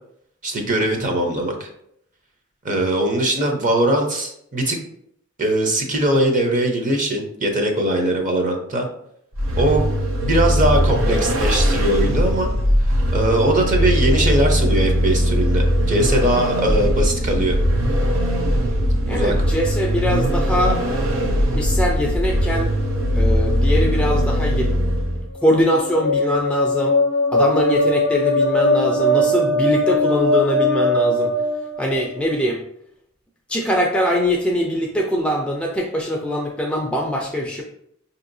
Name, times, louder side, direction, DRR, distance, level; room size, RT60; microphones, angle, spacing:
voice 1, 0.4-1.7 2.6-4.8 5.4-8.9 9.6-9.9 10.1-12.5 13.1-17.6 19.1-19.3, right 1 dB, 40° right, 3 dB, 0.7 m, -20 dB
Vehicle, 9.3-25.3, equal, 85° right, 0.7 m, -20 dB
voice 2, 19.1-20.8 21.6-22.7 23.1-24.7 25.4-27.0 27.3-31.3 31.8-32.6 33.5-37.6, equal, 5° left, 0 dB, 0.4 m, -22 dB
sound 1, 25.4-32.2, left 1 dB, 75° left, 0.5 m, -20 dB
5.3 x 2.8 x 2.6 m, 0.72 s
head